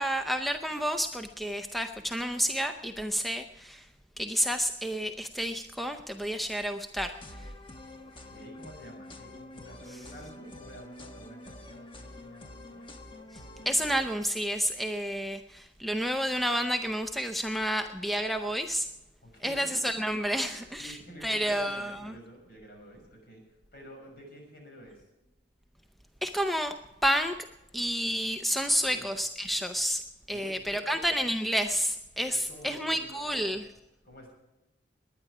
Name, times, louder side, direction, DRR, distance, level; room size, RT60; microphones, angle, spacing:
voice 1, 0.0-3.8 4.2-7.1 13.7-18.9 19.4-21.0 21.2-22.1 26.2-26.7 27.0-27.3 27.7-30.0 30.3-33.6, equal, ahead, 6 dB, 0.5 m, -30 dB
sound 1, 6.9-14.1, left 1 dB, 30° left, 1.1 m, -47 dB
voice 2, 8.0-12.9 19.2-19.8 20.5-23.4 23.7-25.0 28.6-29.1 30.3-31.0 32.3-33.7 34.0-34.3, equal, 55° left, 1 dB, 6.4 m, -50 dB
20.5 x 9.9 x 4.9 m, 0.97 s
head